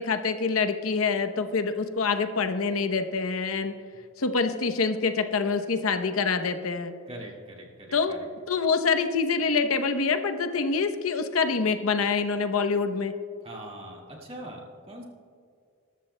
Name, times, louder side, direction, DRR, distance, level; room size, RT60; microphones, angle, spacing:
voice 1, 0.0-3.7 4.2-6.9 7.9-8.2 8.5-13.1, left 4 dB, 90° left, 9 dB, 0.8 m, -26 dB
voice 2, 7.1-8.2 13.4-15.0, right 1 dB, 30° right, -2 dB, 2.0 m, -42 dB
21.0 x 13.0 x 2.2 m, 2.3 s
head